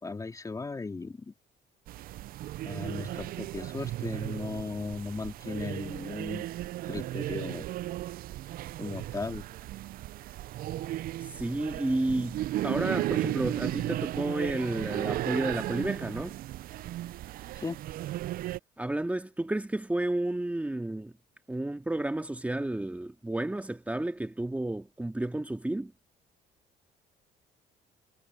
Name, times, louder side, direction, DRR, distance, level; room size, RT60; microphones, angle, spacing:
voice 1, 0.0-1.3 2.7-6.5 6.9-7.6 8.8-9.4 17.6-17.8, left 3 dB, 20° left, 2.8 m, -37 dB
sound 1, 1.9-18.6, right 14 dB, 60° right, 0.4 m, -35 dB
voice 2, 11.3-16.4 18.8-21.1 21.5-25.9, right 1 dB, 10° right, 1.9 m, -31 dB
cardioid pair, 110°, 17 cm